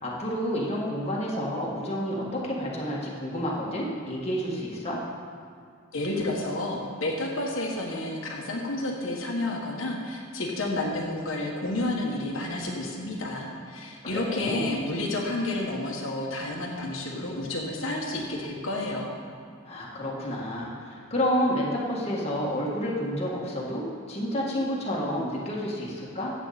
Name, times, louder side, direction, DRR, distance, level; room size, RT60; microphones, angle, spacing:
voice 1, 0.0-5.0 14.0-14.6 19.6-26.3, equal, 30° left, -5 dB, 1.7 m, -30 dB
voice 2, 5.9-19.1, left 2 dB, 70° left, -2 dB, 1.5 m, -30 dB
14.5 x 8.0 x 4.2 m, 2.3 s
head